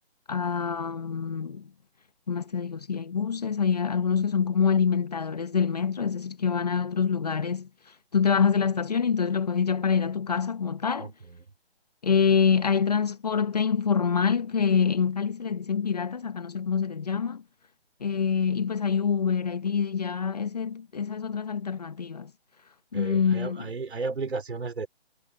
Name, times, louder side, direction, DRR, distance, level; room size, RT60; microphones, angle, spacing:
voice 1, 0.3-1.7 2.3-7.7 8.1-11.1 12.0-17.4 18.0-22.3 22.9-23.7, left 6 dB, 40° left, 1.2 m, -26 dB
voice 2, 22.9-24.9, right 4 dB, 75° right, 3.6 m, -33 dB
hypercardioid pair, 175°, 32 cm